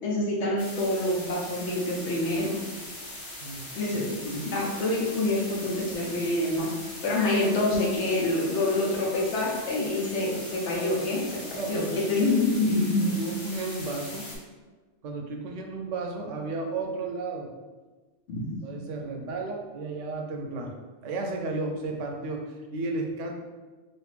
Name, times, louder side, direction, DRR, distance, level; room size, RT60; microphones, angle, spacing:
voice 1, 0.0-2.6 3.7-11.2 11.7-13.1 18.3-18.4, left 2 dB, 70° left, -2 dB, 1.0 m, -26 dB
sound 1, 0.6-14.4, left 1 dB, 35° left, 0.6 m, -41 dB
voice 2, 3.4-4.1 11.6-14.3 15.0-17.5 18.6-20.7 21.0-23.3, right 3 dB, 85° right, 2 dB, 0.9 m, -34 dB
3.2 x 2.5 x 3.2 m, 1.3 s
omnidirectional pair, 1.2 m